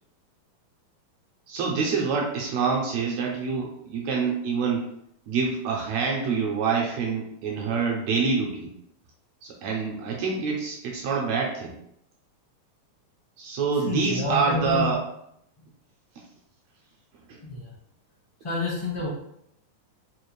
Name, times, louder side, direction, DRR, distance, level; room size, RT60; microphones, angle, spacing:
voice 1, 1.5-4.9 5.3-8.7 9.4-11.7 13.4-15.0 17.3-17.4, right 5 dB, 80° right, -1 dB, 1.6 m, -26 dB
voice 2, 13.8-14.9 17.4-17.7 18.4-19.1, left 3 dB, 50° left, -8 dB, 0.3 m, -29 dB
4.9 x 2.4 x 3.0 m, 0.75 s
omnidirectional pair, 3.5 m